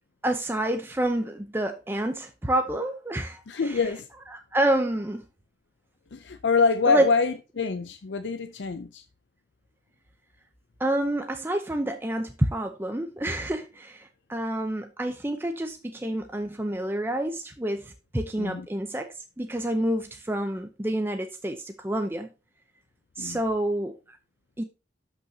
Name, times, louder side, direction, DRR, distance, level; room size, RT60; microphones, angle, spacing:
voice 1, 0.2-3.8 4.3-5.2 6.8-7.1 10.8-19.1 19.4-22.3 23.2-24.2 24.6-24.7, right 1 dB, 10° right, 0.6 m, -28 dB
voice 2, 3.5-4.1 6.1-9.0 18.4-18.7 23.2-23.4, left 4 dB, 80° left, 0.6 m, -25 dB
12.5 x 5.6 x 2.8 m
head